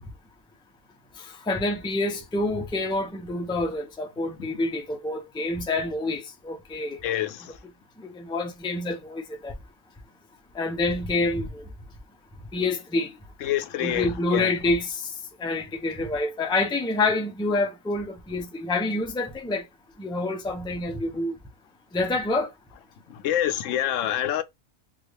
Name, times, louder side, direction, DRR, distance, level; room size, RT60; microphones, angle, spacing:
voice 1, 1.2-7.0 8.1-9.5 10.5-11.6 12.5-13.1 13.8-15.1 15.4-19.6 20.0-21.4 21.9-22.5, left 2 dB, 5° left, 0.4 m, -27 dB
voice 2, 7.0-7.6 13.4-14.5 23.1-24.4, left 11 dB, 85° left, 0.9 m, -27 dB
3.7 x 2.3 x 3.2 m
omnidirectional pair, 1.3 m